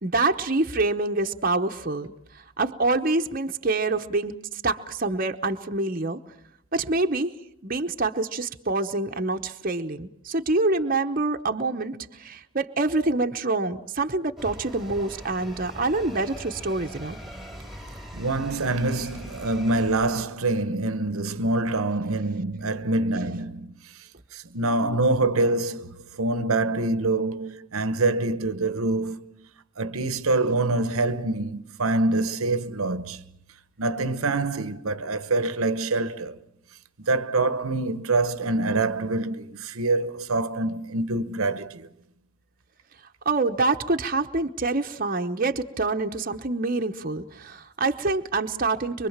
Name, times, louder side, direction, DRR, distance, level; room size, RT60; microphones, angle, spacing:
voice 1, 0.0-2.1 2.6-6.2 6.7-7.3 7.6-17.2 43.2-49.1, right 3 dB, 40° right, 1.0 m, -26 dB
sound 1, 14.4-20.3, equal, ahead, 2.1 m, -41 dB
voice 2, 18.1-29.4 29.8-33.2 33.8-36.4 37.0-41.9, right 2 dB, 75° right, 1.1 m, -25 dB
24.5 x 24.0 x 7.4 m
head